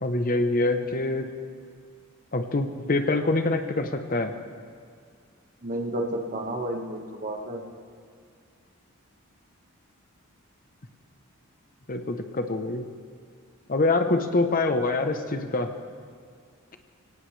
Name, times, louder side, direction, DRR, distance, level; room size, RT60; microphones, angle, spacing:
voice 1, 0.0-1.3 2.3-4.3 11.9-12.9 13.7-15.7, left 2 dB, 40° left, 7 dB, 0.9 m, -25 dB
voice 2, 5.6-7.6, right 1 dB, 40° right, 2 dB, 1.6 m, -31 dB
25.0 x 17.5 x 3.3 m, 2.2 s
head